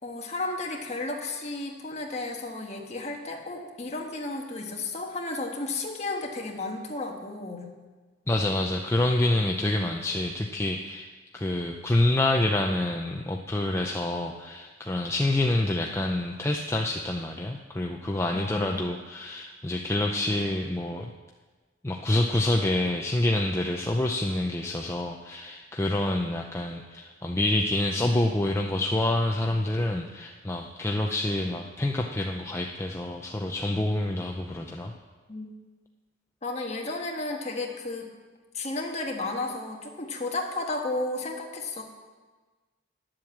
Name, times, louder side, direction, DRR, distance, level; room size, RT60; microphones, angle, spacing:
voice 1, 0.0-7.7 18.3-18.9 35.3-35.5 36.4-38.1 38.5-41.8, left 2 dB, 35° left, 1 dB, 1.4 m, -33 dB
voice 2, 8.3-21.1 21.8-34.9, left 1 dB, 15° left, 1 dB, 0.5 m, -27 dB
10.5 x 7.7 x 7.2 m, 1.3 s
head